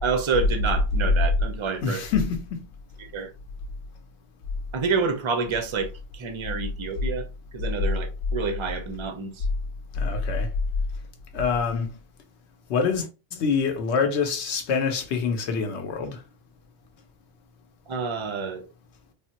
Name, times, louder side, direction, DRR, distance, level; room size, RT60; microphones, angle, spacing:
voice 1, 0.0-2.0 3.0-3.3 4.7-7.2 7.5-9.5 17.9-18.6, right 5 dB, 45° right, 0.4 m, -28 dB
voice 2, 1.8-2.6 9.9-10.5 11.3-12.0 12.7-13.1 13.3-16.2, left 5 dB, 75° left, 0.9 m, -25 dB
3.4 x 2.1 x 2.8 m
omnidirectional pair, 1.2 m